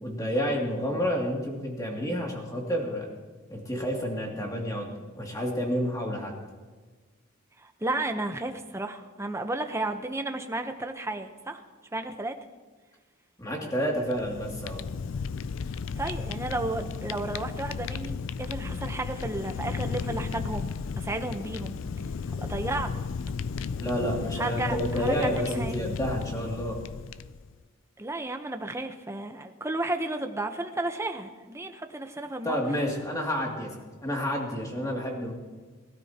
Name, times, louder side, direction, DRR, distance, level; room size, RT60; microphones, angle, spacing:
voice 1, 0.0-3.1 3.5-6.3 13.4-14.8 23.8-26.8 32.4-33.7 34.0-35.3, equal, 15° left, -1 dB, 2.5 m, -30 dB
voice 2, 7.6-11.6 11.9-12.4 16.0-21.8 22.3-22.9 24.4-25.8 28.0-32.6, right 2 dB, 15° right, 6 dB, 0.9 m, -33 dB
Fire, 14.0-27.5, left 5 dB, 70° left, 0.4 m, -34 dB
22.5 x 12.5 x 2.9 m, 1.4 s
head